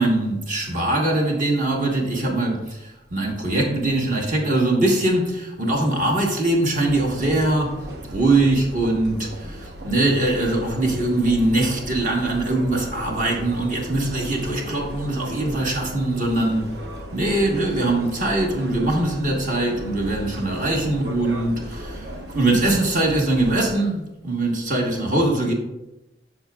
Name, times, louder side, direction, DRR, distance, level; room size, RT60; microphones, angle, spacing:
voice 1, 0.0-7.8 8.1-16.7 17.1-22.1 22.3-25.5, right 2 dB, 45° right, 1.2 m, -22 dB
sound 1, 6.9-23.7, equal, 65° right, 0.9 m, -36 dB
9.6 x 5.9 x 2.3 m
head